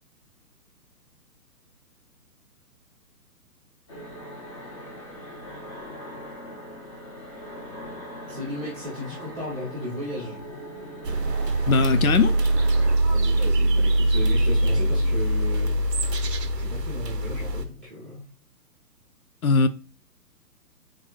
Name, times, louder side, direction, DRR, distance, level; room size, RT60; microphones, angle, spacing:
sound 1, 3.9-13.0, equal, 20° left, 0.8 m, -40 dB
voice 1, 8.3-10.4 13.0-15.7 16.5-18.3, equal, 5° right, 0.5 m, -35 dB
sound 2, 11.0-17.6, right 1 dB, 90° right, 0.7 m, -22 dB
voice 2, 11.7-12.4 19.4-19.7, left 5 dB, 65° left, 0.5 m, -20 dB
4.7 x 3.6 x 2.3 m
figure-of-eight pair, 130°, 48 cm